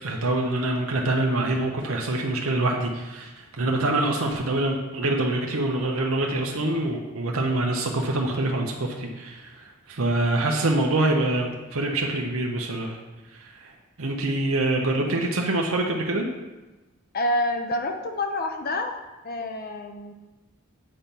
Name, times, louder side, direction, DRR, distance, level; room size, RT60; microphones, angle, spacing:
voice 1, 0.0-13.0 13.4-13.7 14.0-16.3, right 2 dB, 85° right, 1 dB, 0.9 m, -25 dB
voice 2, 17.1-19.0 19.2-20.1, left 1 dB, 45° left, 4 dB, 0.7 m, -27 dB
8.6 x 4.3 x 5.3 m, 1.1 s
head